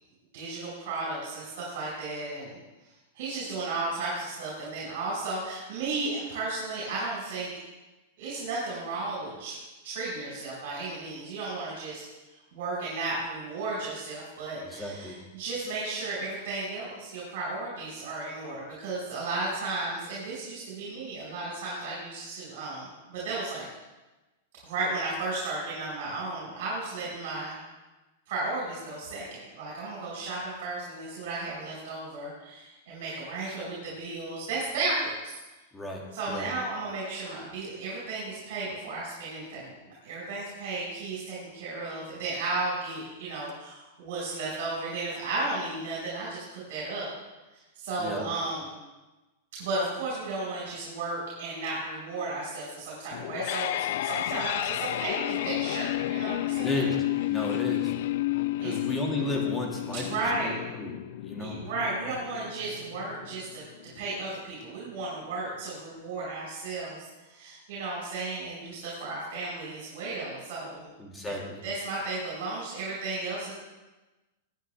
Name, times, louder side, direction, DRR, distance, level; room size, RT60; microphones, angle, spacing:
voice 1, 0.3-2.6 3.1-7.6 8.2-9.6 9.8-12.0 12.5-23.6 24.6-27.6 28.3-35.4 36.1-47.1 47.8-48.7 49.6-56.9 58.6-58.7 59.9-60.6 61.4-63.6 63.9-70.9 71.2-71.3 71.6-73.5, right 3 dB, 60° right, -6 dB, 5.0 m, -34 dB
voice 2, 14.6-15.2 35.7-36.5 48.0-48.3 56.6-57.0 57.3-57.9 58.6-61.0 61.2-61.6 71.0-71.6, left 1 dB, 10° left, -1 dB, 2.2 m, -34 dB
sound 1, 53.1-64.1, left 16 dB, 60° left, 0.3 m, -31 dB
19.0 x 9.1 x 3.5 m, 1.1 s
supercardioid pair, 150°, 0 cm